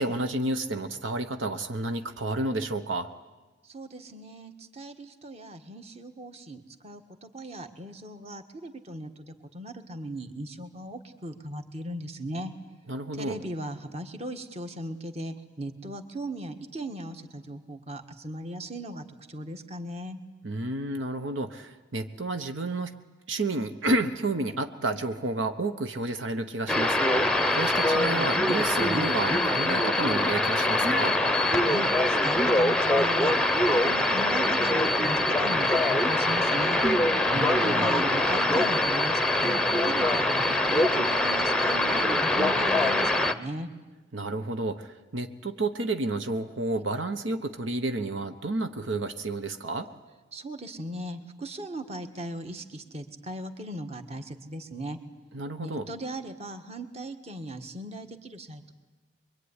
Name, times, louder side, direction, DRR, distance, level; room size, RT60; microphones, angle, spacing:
voice 1, 0.0-3.1 12.9-13.4 20.4-22.9 23.3-31.2 37.3-37.9 44.1-49.9 55.3-55.9, right 2 dB, 75° right, 8 dB, 1.1 m, -31 dB
voice 2, 3.6-12.5 13.1-20.2 31.6-36.8 37.3-40.6 40.9-43.7 50.3-55.0 55.6-58.7, right 1 dB, 35° right, 7 dB, 1.6 m, -38 dB
sound 1, 26.7-43.3, left 1 dB, 5° left, 0.8 m, -24 dB
24.5 x 23.0 x 9.8 m, 1.2 s
head